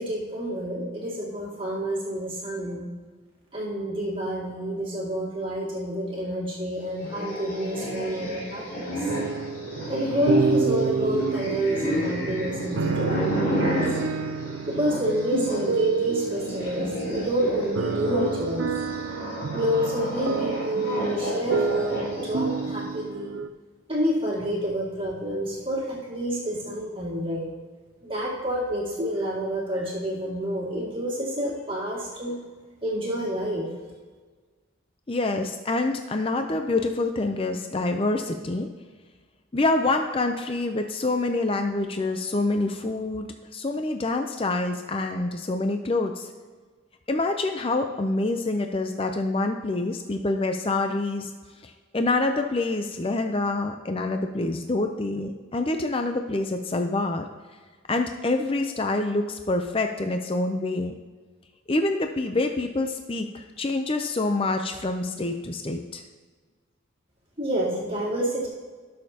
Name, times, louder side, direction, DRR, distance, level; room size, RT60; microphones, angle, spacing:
voice 1, 0.0-2.9 3.5-9.0 9.9-13.9 14.7-18.7 19.5-23.4 23.9-27.5 28.0-32.4 32.8-33.7 67.4-68.5, equal, 25° right, -4 dB, 2.1 m, -28 dB
sound 1, 6.9-15.7 16.0-22.8, equal, 45° left, 3.1 m, -31 dB
sound 2, 9.1-23.5, right 5 dB, 65° right, 0.4 m, -30 dB
voice 2, 35.1-38.7 39.5-43.3 43.5-46.3 47.1-51.3 51.6-57.2 57.9-60.9 61.7-66.0, left 2 dB, 25° left, 5 dB, 0.5 m, -26 dB
18.5 x 6.4 x 2.9 m, 1.4 s
head